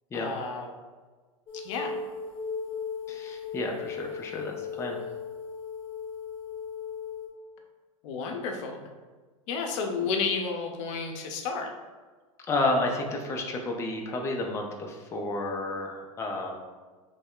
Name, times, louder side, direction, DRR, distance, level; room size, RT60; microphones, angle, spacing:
voice 1, 0.1-0.7 1.5-1.9 8.0-8.8 9.5-11.7, left 5 dB, 60° left, 3 dB, 0.6 m, -31 dB
sound 1, 1.5-7.3, left 6 dB, 35° left, 0.8 m, -37 dB
voice 2, 3.1-5.0 12.5-16.6, left 2 dB, 15° left, 1 dB, 0.4 m, -31 dB
3.1 x 2.0 x 3.6 m, 1.4 s
hypercardioid pair, 105°, 18 cm